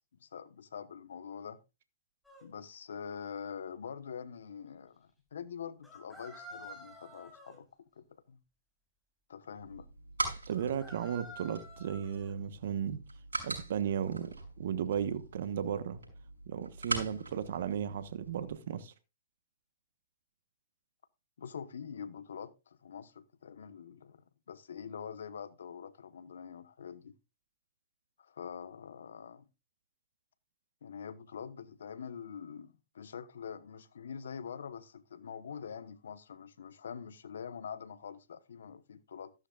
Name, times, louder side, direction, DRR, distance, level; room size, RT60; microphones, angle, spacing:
voice 1, 0.2-1.6 2.4-7.7 8.0-8.4 9.3-9.9 21.4-27.2 28.2-29.5 30.8-39.3, left 7 dB, 75° left, 1.1 m, -45 dB
sound 1, 2.2-2.4 5.8-7.6 10.5-12.3, equal, 5° left, 5.0 m, -50 dB
sound 2, 9.6-18.5, right 3 dB, 90° right, 5.5 m, -42 dB
voice 2, 10.5-13.0 13.4-16.0 16.5-18.9, right 8 dB, 65° right, 1.1 m, -35 dB
13.5 x 12.0 x 2.4 m
hypercardioid pair, 120°, 0 cm